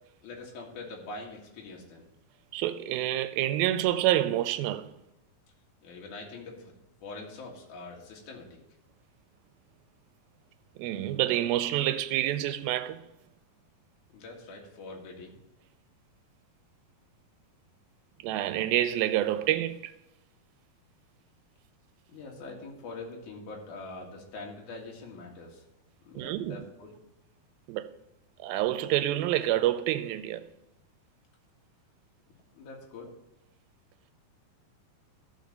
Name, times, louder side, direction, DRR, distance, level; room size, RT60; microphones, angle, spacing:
voice 1, 0.2-2.1 5.8-6.7 7.0-8.6 14.1-15.4 22.1-25.7 26.0-26.9 32.5-33.1, left 3 dB, 60° left, 3.1 m, -44 dB
voice 2, 2.5-4.9 10.8-13.0 18.2-19.9 26.2-26.6 27.7-27.9 28.4-30.4, right 13 dB, 90° right, 2.4 m, -28 dB
14.0 x 4.9 x 5.3 m
omnidirectional pair, 4.2 m